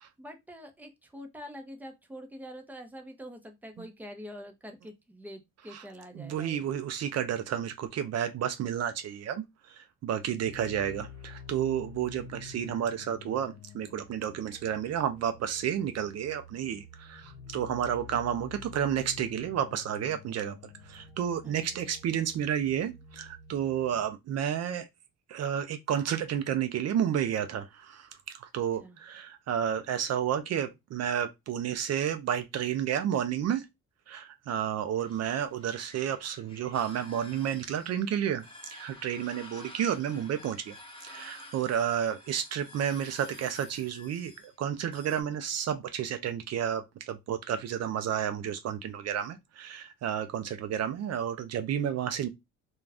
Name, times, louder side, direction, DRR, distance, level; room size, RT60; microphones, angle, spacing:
voice 1, 0.2-6.7 21.4-21.8 28.8-29.0, equal, 5° right, 0.7 m, -45 dB
voice 2, 6.2-9.4 9.7-20.6 20.9-24.9 25.3-28.1 28.4-33.7 34.1-40.7 41.0-44.3 44.6-52.3, right 9 dB, 55° right, 0.4 m, -31 dB
sound 1, 10.3-24.0, left 4 dB, 55° left, 0.6 m, -49 dB
sound 2, 35.0-45.2, left 1 dB, 15° left, 1.0 m, -50 dB
2.4 x 2.2 x 3.3 m
cardioid pair, 90°, 30 cm